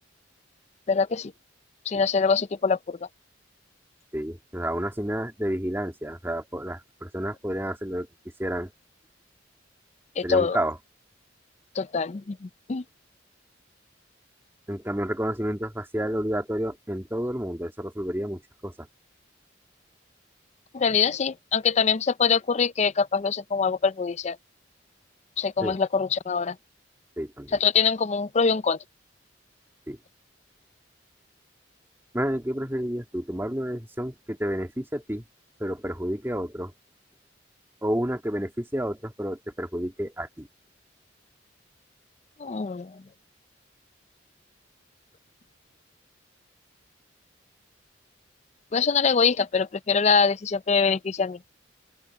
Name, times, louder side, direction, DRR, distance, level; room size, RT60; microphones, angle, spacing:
voice 1, 0.9-1.3 1.9-3.0 10.2-10.6 11.8-12.8 20.7-24.4 25.4-26.6 27.6-28.8 42.4-43.0 48.7-51.4, left 5 dB, 35° left, 0.4 m, -24 dB
voice 2, 4.1-8.1 8.4-8.7 10.2-10.8 14.7-18.9 25.6-25.8 27.2-27.6 29.9-30.0 32.1-35.2 35.6-36.7 37.8-40.5, equal, 10° right, 1.9 m, -30 dB
open air
head